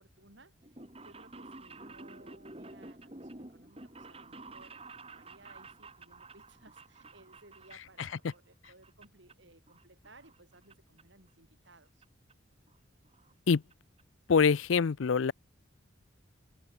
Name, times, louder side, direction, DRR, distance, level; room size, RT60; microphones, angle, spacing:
voice 1, 0.0-12.0, right 2 dB, 70° right, 5.6 m, -60 dB
sound 1, 0.6-8.4 8.6-9.3 9.7-10.7 11.0-11.1 12.0-12.1 12.3-12.4 12.7-12.8 13.0-13.3 13.7-13.8 14.0-14.1, right 2 dB, 30° right, 2.9 m, -50 dB
voice 2, 14.3-15.3, left 5 dB, 80° left, 0.5 m, -24 dB
head